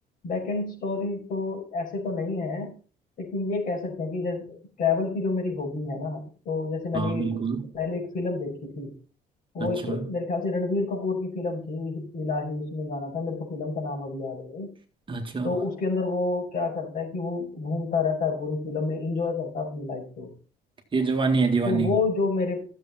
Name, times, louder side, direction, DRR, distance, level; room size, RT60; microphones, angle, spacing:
voice 1, 0.2-2.7 3.2-7.4 7.7-8.9 9.5-14.7 15.4-20.3 21.6-22.7, left 3 dB, 55° left, 5.4 m, -29 dB
voice 2, 6.9-7.6 9.6-10.1 15.1-15.5 20.9-21.9, right 4 dB, 30° right, 1.9 m, -26 dB
12.5 x 7.4 x 4.3 m
cardioid pair, 110°, 17 cm